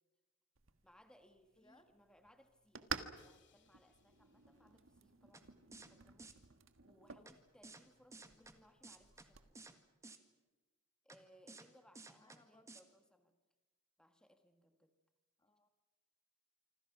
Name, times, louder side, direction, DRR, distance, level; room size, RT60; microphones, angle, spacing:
sound 1, 0.6-9.5, right 6 dB, 70° right, 1.5 m, -52 dB
voice 1, 0.8-6.3 6.8-9.8 11.0-13.3 14.0-14.9, equal, 5° left, 6 dB, 1.6 m, -67 dB
voice 2, 1.6-1.9 8.4-8.7 12.2-12.7 15.4-15.7, left 1 dB, 20° left, 7 dB, 1.6 m, -68 dB
Crash cymbal, 3.1-5.2, left 7 dB, 60° left, 2.6 m, -74 dB
sound 2, 5.3-5.4 5.7-5.9 6.2-6.3 7.3-7.4 7.6-7.8 8.1-8.5 8.8-9.3 9.5-9.7 10.0-10.2 11.1-11.2 11.5-11.7 11.9-12.4 12.7-12.8, right 3 dB, 15° right, 1.7 m, -54 dB
26.5 x 26.0 x 6.1 m, 1.2 s
head